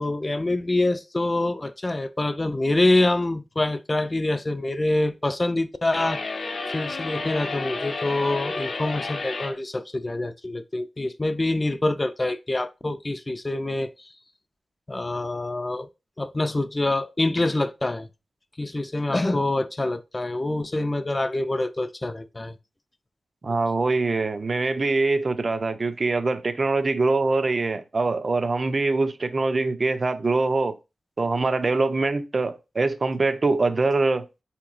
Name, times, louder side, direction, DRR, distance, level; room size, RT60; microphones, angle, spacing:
voice 1, 0.0-6.2 6.7-14.1 14.9-15.9 16.2-18.1 18.6-22.6 23.5-23.6, left 2 dB, 30° left, 0.3 m, -25 dB
sound 1, 5.9-9.6, left 3 dB, 60° left, 0.6 m, -31 dB
voice 2, 23.4-30.8 31.2-34.3, right 3 dB, 50° right, 0.4 m, -23 dB
3.7 x 2.9 x 2.4 m
cardioid pair, 70°, 0 cm